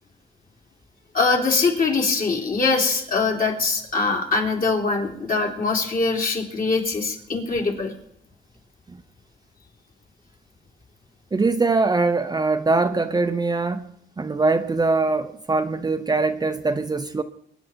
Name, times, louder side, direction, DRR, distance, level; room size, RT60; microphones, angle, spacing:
voice 1, 1.1-7.9, left 4 dB, 45° left, 3.3 m, -22 dB
voice 2, 11.3-17.2, right 3 dB, 20° right, 0.7 m, -22 dB
22.5 x 10.0 x 4.5 m
cardioid pair, 90°, 20 cm